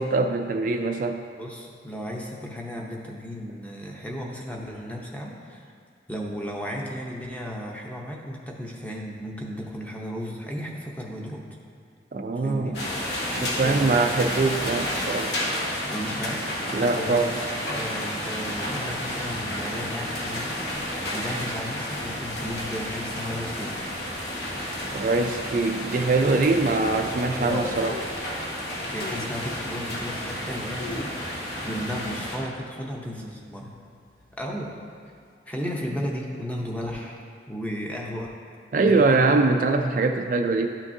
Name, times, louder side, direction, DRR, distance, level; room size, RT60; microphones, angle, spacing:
voice 1, 0.0-1.2 12.1-12.7 13.3-15.3 16.7-17.4 24.9-28.0 38.7-40.7, right 3 dB, 45° right, 5 dB, 0.3 m, -23 dB
voice 2, 1.4-5.7 6.1-11.4 12.4-12.8 13.6-14.3 15.9-16.5 16.8-23.7 27.4-27.7 28.9-33.7 34.3-34.7 35.5-38.4 38.7-39.4, equal, 10° left, -1 dB, 0.7 m, -34 dB
sound 1, 12.7-32.4, left 1 dB, 65° left, 1.3 m, -31 dB
sound 2, 27.5-28.2 29.0-29.4 29.9-30.0 30.6-31.7 32.0-32.1 32.4-32.8 33.2-33.5 34.2-34.9 35.2-35.3, left 2 dB, 50° left, 0.5 m, -38 dB
12.0 x 5.9 x 2.7 m, 2.3 s
head